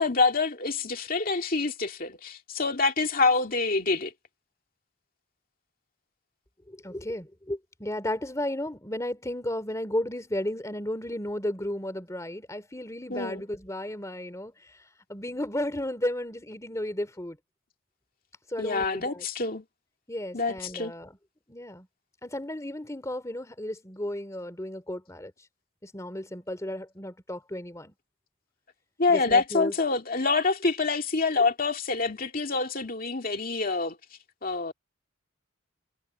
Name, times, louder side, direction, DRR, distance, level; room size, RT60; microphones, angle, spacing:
voice 1, 0.0-4.1 13.1-13.4 18.6-19.6 20.3-20.9 29.0-34.0 34.4-34.7, left 3 dB, 45° left, 2.4 m, -26 dB
voice 2, 6.7-14.8 15.1-17.4 18.5-19.2 20.1-21.1 21.5-21.9 22.2-25.3 25.8-27.9 29.1-29.7, left 1 dB, 15° left, 2.7 m, -34 dB
head